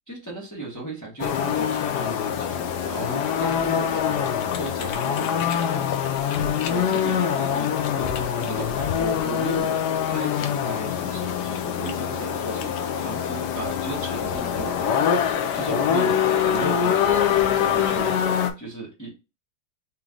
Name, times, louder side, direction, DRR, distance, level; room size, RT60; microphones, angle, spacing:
voice 1, 0.1-5.9 6.7-17.3 17.5-19.2, right 2 dB, 10° left, -3 dB, 1.2 m, -36 dB
sound 1, 1.2-18.5, left 8 dB, 70° left, 1.1 m, -24 dB
4.0 x 3.0 x 3.7 m, 0.27 s
omnidirectional pair, 2.2 m